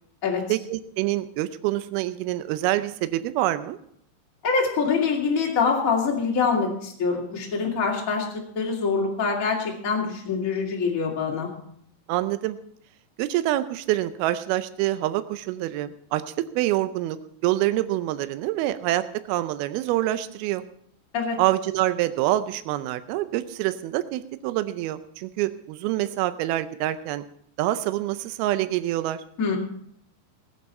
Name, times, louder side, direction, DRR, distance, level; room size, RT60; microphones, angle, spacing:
voice 1, 0.5-3.8 12.1-12.6 13.2-17.2 17.4-20.6 21.4-27.2 27.6-29.2, right 15 dB, 90° right, 11 dB, 2.2 m, -26 dB
voice 2, 4.4-11.5 21.1-21.4 29.4-29.6, left 5 dB, 25° left, -2 dB, 1.9 m, -25 dB
19.5 x 8.3 x 4.3 m, 0.68 s
omnidirectional pair, 5.2 m